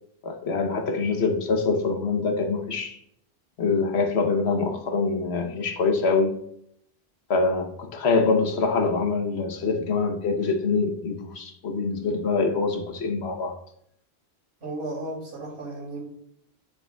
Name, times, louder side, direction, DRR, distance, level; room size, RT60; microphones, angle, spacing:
voice 1, 0.2-3.0 3.6-6.3 7.3-13.5, left 4 dB, 75° left, 5 dB, 1.2 m, -24 dB
voice 2, 14.6-16.0, right 2 dB, 80° right, -3 dB, 2.9 m, -34 dB
7.2 x 7.1 x 2.3 m, 0.71 s
omnidirectional pair, 1.1 m